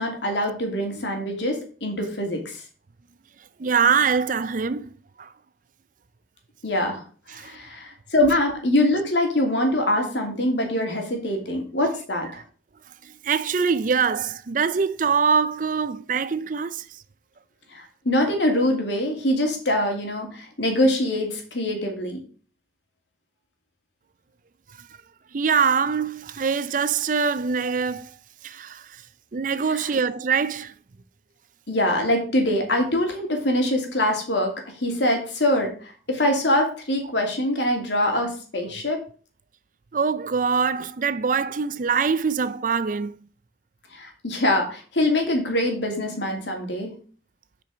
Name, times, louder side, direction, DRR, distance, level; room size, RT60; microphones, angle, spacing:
voice 1, 0.0-2.6 6.6-7.0 7.3-12.4 17.7-22.2 29.7-29.9 31.7-34.5 34.8-39.0 43.9-46.9, left 1 dB, 75° left, 2.6 m, -24 dB
voice 2, 3.6-4.9 5.2-5.3 7.3-7.6 12.3-12.4 13.0-17.0 24.8-24.9 25.3-28.1 28.4-29.0 29.3-30.7 39.9-43.2, right 5 dB, 45° right, 0.5 m, -24 dB
7.5 x 5.2 x 6.1 m
head